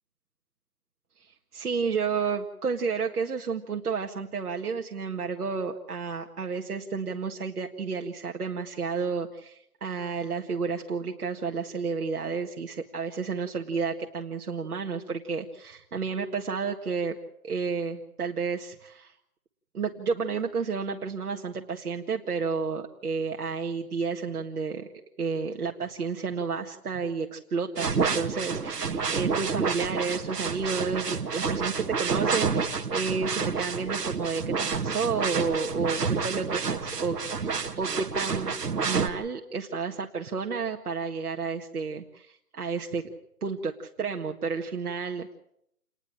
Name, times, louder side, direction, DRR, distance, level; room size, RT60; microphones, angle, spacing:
voice 1, 1.2-17.2 17.4-19.1 19.7-24.9 25.2-37.2 37.4-43.1 43.4-45.3, right 5 dB, 70° right, 2 dB, 1.8 m, -31 dB
sound 1, 27.8-39.1, right 5 dB, 90° right, 2.0 m, -29 dB
29.0 x 10.5 x 8.7 m, 0.74 s
hypercardioid pair, 170°, 46 cm